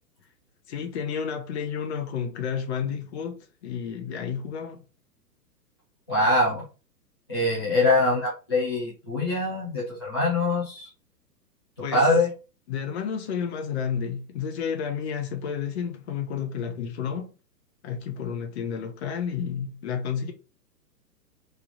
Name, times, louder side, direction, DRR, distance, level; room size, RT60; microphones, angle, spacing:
voice 1, 0.7-4.8 11.8-12.1 12.7-17.3 17.8-20.3, left 7 dB, 40° left, 0.8 m, -31 dB
voice 2, 6.1-6.7 7.3-10.9 11.9-12.3, left 2 dB, 20° left, 0.3 m, -23 dB
3.2 x 2.4 x 3.8 m
figure-of-eight pair, 115°, 50 cm